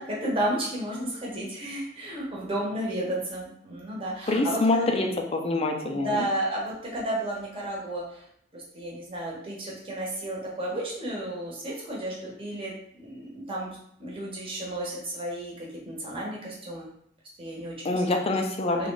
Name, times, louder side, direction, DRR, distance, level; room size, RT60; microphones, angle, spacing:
voice 1, 0.0-5.0 5.9-8.2 8.5-16.9 17.4-18.1 18.7-18.9, right 1 dB, 30° right, -4 dB, 1.1 m, -32 dB
voice 2, 4.3-6.3 17.8-18.9, left 2 dB, 35° left, 3 dB, 0.5 m, -25 dB
3.1 x 2.4 x 3.9 m, 0.67 s
head